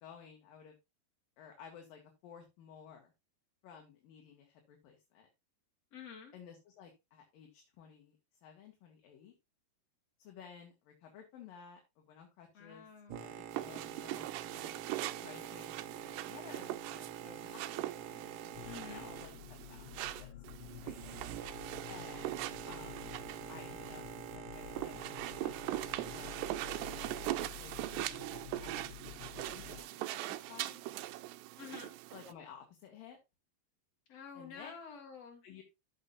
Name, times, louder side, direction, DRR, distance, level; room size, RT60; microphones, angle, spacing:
voice 1, 0.0-0.8 1.4-3.1 3.6-5.3 6.3-8.2 8.4-9.3 10.2-12.9 13.2-14.8 15.2-20.4 20.8-21.2 21.9-23.2 23.5-24.1 24.3-27.2 27.6-30.8 32.1-33.2 34.3-34.7 35.4-35.6, left 7 dB, 65° left, 3 dB, 3.0 m, -55 dB
voice 2, 5.9-6.3 12.5-13.2 18.7-19.1 31.6-31.9 34.1-35.4, left 6 dB, 40° left, 1 dB, 3.5 m, -49 dB
Boat Water vehicle, 13.1-27.4, right 9 dB, 70° right, 2.1 m, -47 dB
sound 1, 13.5-32.3, right 16 dB, 85° right, 2.7 m, -42 dB
sound 2, 18.5-29.8, left 13 dB, 80° left, 1.9 m, -51 dB
13.0 x 6.8 x 2.5 m, 0.23 s
omnidirectional pair, 4.7 m